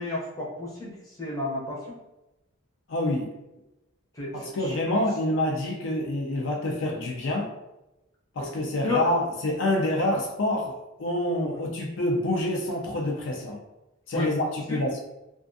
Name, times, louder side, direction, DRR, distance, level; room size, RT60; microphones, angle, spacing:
voice 1, 0.0-2.0 4.1-5.0 8.8-9.0 14.1-14.3 14.7-14.8, left 3 dB, 15° left, -5 dB, 0.6 m, -32 dB
voice 2, 2.9-3.3 4.3-7.5 8.4-13.6 14.1-15.0, left 1 dB, 60° left, -1 dB, 0.4 m, -27 dB
2.4 x 2.4 x 2.5 m, 0.96 s
head